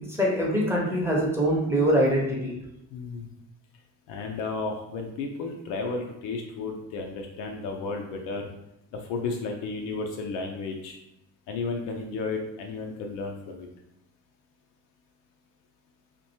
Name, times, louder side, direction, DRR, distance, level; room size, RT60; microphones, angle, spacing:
voice 1, 0.1-2.5, equal, 5° right, -3 dB, 0.7 m, -23 dB
voice 2, 2.9-3.3 4.1-8.5 8.9-11.0 11.5-13.7, left 3 dB, 60° left, 2 dB, 0.5 m, -33 dB
2.6 x 2.2 x 2.7 m, 0.83 s
figure-of-eight pair, 40°, 49 cm